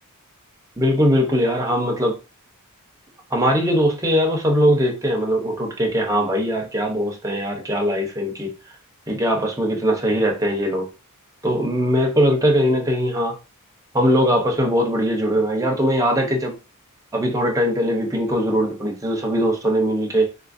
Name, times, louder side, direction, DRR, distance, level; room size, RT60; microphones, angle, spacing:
voice 1, 0.8-2.2 3.3-8.5 9.1-10.9 11.4-13.4 13.9-16.5 17.1-20.3, equal, 15° right, 0.8 m, -20 dB
3.8 x 2.5 x 2.5 m
head